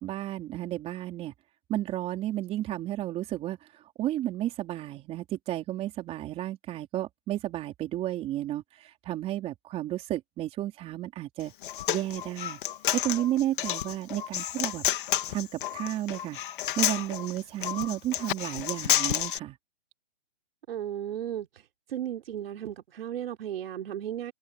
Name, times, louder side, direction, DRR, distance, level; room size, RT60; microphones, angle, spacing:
voice 1, 0.0-1.3 1.7-3.6 4.0-11.5 11.9-12.6 12.9-14.8 15.3-16.4 16.8-19.6, right 13 dB, 15° right, 4.4 m, -32 dB
Human voice, 11.4-19.4, left 12 dB, 45° left, 2.5 m, -30 dB
voice 2, 20.7-21.5 21.9-24.3, right 10 dB, 50° right, 4.1 m, -35 dB
open air
hypercardioid pair, 160°, 36 cm